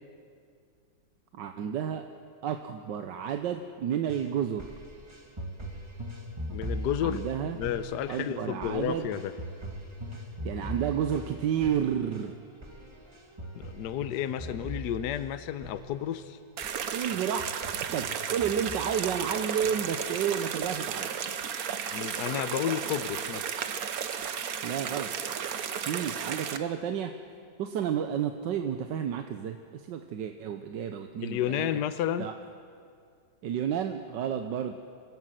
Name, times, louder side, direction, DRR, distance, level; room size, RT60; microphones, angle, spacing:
voice 1, 1.3-2.0 2.4-4.7 7.0-7.6 8.1-9.1 10.4-12.3 16.9-17.5 17.9-21.1 24.6-25.1 25.9-27.1 27.6-31.7 32.2-32.3 33.4-34.8, right 8 dB, 70° right, 6 dB, 1.5 m, -31 dB
sound 1, 4.0-16.3 16.6-16.8 17.1-19.2 19.6-20.2 20.6-20.7, equal, 15° right, 1.8 m, -41 dB
voice 2, 6.5-7.2 7.5-9.3 13.5-16.4 21.9-23.6 31.2-32.3, left 10 dB, 70° left, 11 dB, 1.2 m, -31 dB
sound 2, 16.6-26.6, right 7 dB, 55° right, 1.3 m, -34 dB
27.0 x 16.0 x 7.7 m, 2.3 s
omnidirectional pair, 2.0 m